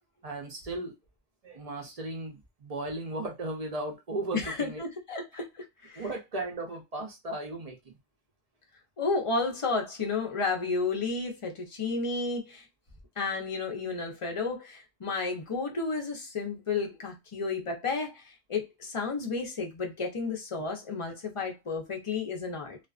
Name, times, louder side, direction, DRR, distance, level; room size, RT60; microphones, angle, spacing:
voice 1, 0.2-0.9 1.4-4.8 6.0-7.8, right 2 dB, 45° right, 0.6 m, -36 dB
voice 2, 4.3-5.5 5.8-6.1 9.0-12.6 13.2-18.2 18.5-22.8, left 4 dB, 35° left, 0.6 m, -32 dB
2.4 x 2.3 x 2.3 m
omnidirectional pair, 1.1 m